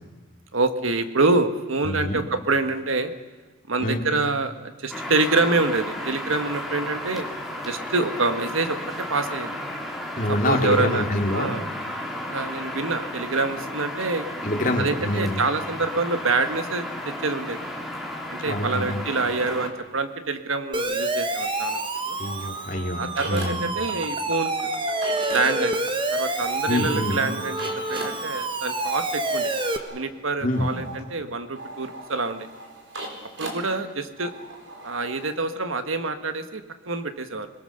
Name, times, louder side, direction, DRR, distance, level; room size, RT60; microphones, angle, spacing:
voice 1, 0.5-3.1 3.7-7.3 7.6-8.8 9.1-9.5 10.3-11.1 11.3-11.6 12.2-14.2 14.8-17.6 18.3-22.2 23.0-24.5 25.3-29.5 29.9-32.5 33.4-34.3 34.8-37.5, right 3 dB, 85° right, 8 dB, 1.6 m, -26 dB
voice 2, 1.8-2.2 3.8-4.0 6.0-6.1 10.2-11.6 14.4-15.4 18.5-19.0 22.2-23.6 26.7-27.2 30.4-30.7, left 1 dB, 40° left, 2 dB, 2.9 m, -26 dB
sound 1, 4.9-19.7, left 1 dB, ahead, 3.0 m, -33 dB
Siren, 20.7-29.8, right 2 dB, 25° right, 1.3 m, -28 dB
sound 2, 21.4-23.8 24.1-35.4, right 1 dB, 60° right, 4.5 m, -40 dB
28.0 x 21.5 x 6.7 m, 1.3 s
head